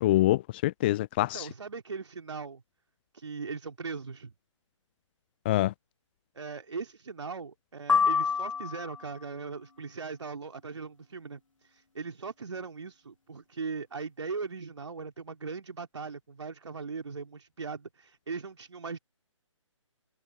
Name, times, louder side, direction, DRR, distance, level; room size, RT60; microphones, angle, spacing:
voice 1, 0.0-1.5 5.4-5.7, left 16 dB, 20° left, 0.5 m, -25 dB
voice 2, 1.3-2.6 3.1-4.3 6.3-19.0, right 4 dB, 60° right, 3.0 m, -39 dB
sound 1, 7.9-9.2, left 6 dB, 75° left, 1.5 m, -26 dB
figure-of-eight pair, 140°, 16 cm